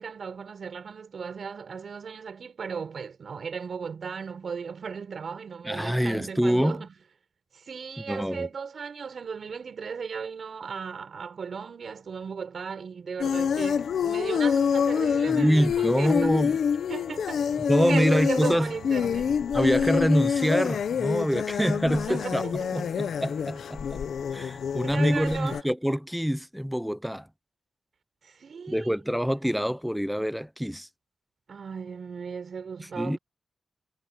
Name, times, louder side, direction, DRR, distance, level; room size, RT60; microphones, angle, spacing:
voice 1, 0.0-6.9 7.5-16.5 16.9-17.4 17.8-20.1 22.1-23.2 24.8-25.6 28.2-28.9 31.5-33.2, right 6 dB, 60° right, 6.7 m, -36 dB
voice 2, 5.6-6.8 8.0-8.5 15.3-16.6 17.7-18.7 19.5-24.0 24.3-27.3 28.7-30.9 32.9-33.2, equal, ahead, 0.5 m, -25 dB
sound 1, 13.2-25.6, left 7 dB, 85° left, 0.8 m, -27 dB
wide cardioid pair, 120°, 0 cm